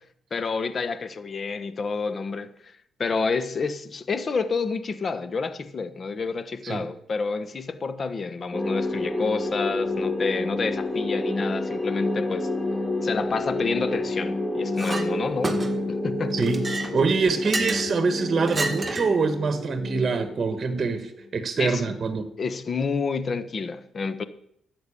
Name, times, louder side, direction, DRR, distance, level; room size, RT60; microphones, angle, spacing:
voice 1, 0.3-2.7 3.0-12.5 13.0-15.6 15.9-16.4 21.6-21.8 22.4-24.2, left 4 dB, 40° left, 1.1 m, -29 dB
sound 1, 8.5-21.3, left 2 dB, 10° left, 4.0 m, -29 dB
Chink clink, 14.8-15.1 15.4-15.9 16.4-17.9 18.5-19.2, right 2 dB, 20° right, 1.8 m, -30 dB
voice 2, 16.3-22.3, right 4 dB, 40° right, 1.4 m, -25 dB
11.5 x 8.1 x 8.6 m
cardioid pair, 90°, 0 cm